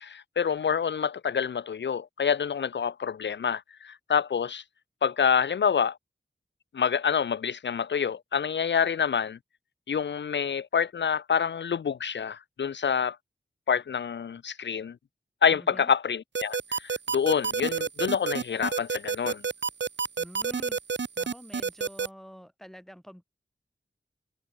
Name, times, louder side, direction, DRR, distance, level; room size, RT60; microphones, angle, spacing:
voice 1, 0.0-4.6 5.0-6.0 6.7-9.4 9.9-13.2 13.7-15.0 15.4-19.4, left 7 dB, 80° left, 0.5 m, -27 dB
voice 2, 15.5-15.9 20.2-20.8 21.2-23.2, equal, ahead, 3.8 m, -47 dB
sound 1, 16.3-22.1, right 5 dB, 80° right, 0.9 m, -28 dB
wide cardioid pair, 70°, 18 cm